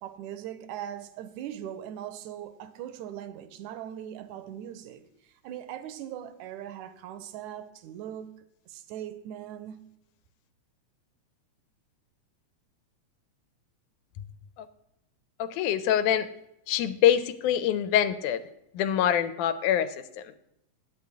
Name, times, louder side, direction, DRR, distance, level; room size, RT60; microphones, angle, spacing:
voice 1, 0.0-8.4 8.7-9.8, right 10 dB, 80° right, 2.0 m, -40 dB
voice 2, 15.4-16.3 16.7-18.4 18.7-20.3, left 10 dB, 85° left, 2.1 m, -25 dB
10.5 x 8.5 x 3.4 m
omnidirectional pair, 3.5 m